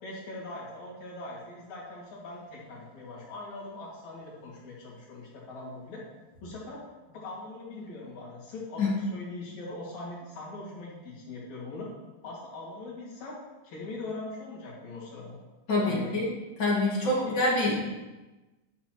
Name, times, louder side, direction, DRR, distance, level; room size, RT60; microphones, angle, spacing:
voice 1, 0.0-6.0 6.4-6.8 7.1-11.9 12.2-13.4 13.6-15.4 15.8-16.2 17.0-17.7, left 2 dB, 75° left, -6 dB, 3.5 m, -41 dB
voice 2, 15.7-16.3 16.6-17.7, left 2 dB, 45° left, -5 dB, 2.3 m, -25 dB
11.0 x 6.0 x 3.0 m, 1.1 s
omnidirectional pair, 3.3 m